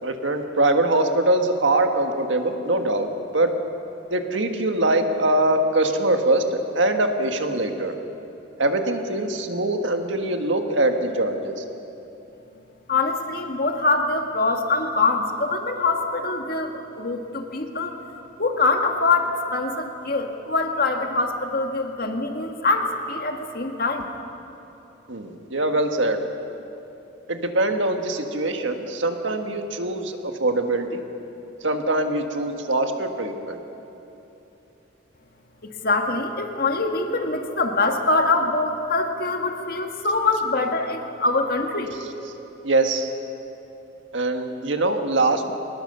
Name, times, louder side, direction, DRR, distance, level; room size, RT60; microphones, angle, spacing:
voice 1, 0.0-3.1 3.3-3.5 4.1-7.9 8.6-11.6 25.1-26.2 27.3-31.0 31.6-33.6 42.6-43.1 44.1-45.5, right 2 dB, 75° right, 5 dB, 1.7 m, -23 dB
voice 2, 12.9-17.9 18.4-24.0 35.6-41.9, left 3 dB, 50° left, 4 dB, 1.7 m, -24 dB
22.5 x 20.0 x 6.9 m, 3.0 s
head